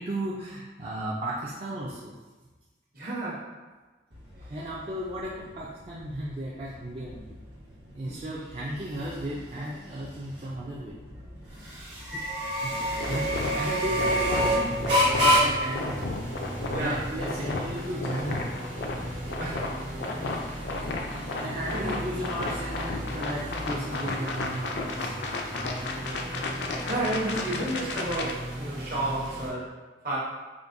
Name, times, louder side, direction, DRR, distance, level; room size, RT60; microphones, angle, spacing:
voice 1, 0.0-2.1 4.5-7.4 7.9-11.0 12.5-14.8 15.1-16.0 16.5-18.4 20.3-25.1, right 1 dB, 35° right, -7 dB, 0.4 m, -35 dB
voice 2, 2.9-3.5 12.1-12.2 16.7-17.0 19.4-19.6 21.7-22.0 26.9-30.2, right 1 dB, 50° right, -6 dB, 1.1 m, -31 dB
sound 1, 4.1-21.3, equal, 90° right, 1.3 m, -30 dB
sound 2, 12.7-29.5, right 1 dB, 70° right, 1.3 m, -37 dB
sound 3, 13.0-28.3, left 2 dB, 70° left, 0.4 m, -34 dB
5.0 x 2.6 x 2.6 m, 1.3 s
head